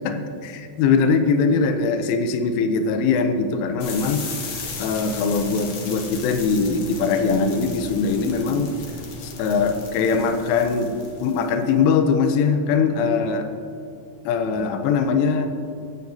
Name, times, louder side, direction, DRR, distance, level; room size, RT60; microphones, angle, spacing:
voice 1, 0.0-4.2 4.8-8.7 9.2-13.5 14.3-15.5, left 5 dB, 85° left, 7 dB, 3.2 m, -21 dB
sound 1, 3.8-11.7, left 3 dB, 70° left, 1.8 m, -35 dB
15.5 x 9.2 x 2.8 m, 2.6 s
omnidirectional pair, 5.6 m